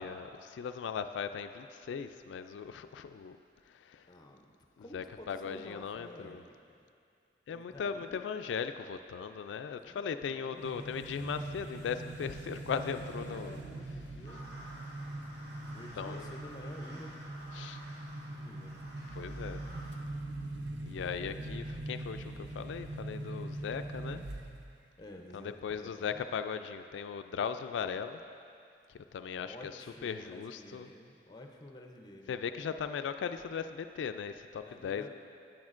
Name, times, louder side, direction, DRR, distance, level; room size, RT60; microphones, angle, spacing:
voice 1, 0.0-3.4 3.7-4.1 4.9-6.4 7.5-13.6 15.8-16.3 17.5-17.8 19.1-19.6 20.9-24.2 25.3-28.2 28.9-29.7 30.0-30.9 32.3-35.1, left 6 dB, 90° left, 9 dB, 0.3 m, -38 dB
voice 2, 4.1-4.5 4.8-6.9 7.5-8.2 9.8-11.0 13.2-14.7 15.7-17.3 18.3-18.8 19.2-19.7 25.0-26.2 29.4-32.4 34.7-35.1, left 1 dB, 25° left, 3 dB, 0.5 m, -51 dB
sound 1, 10.6-24.8, right 2 dB, 85° right, 0.7 m, -42 dB
sound 2, 14.2-20.0, equal, 65° right, 1.3 m, -51 dB
10.5 x 9.0 x 2.5 m, 2.4 s
head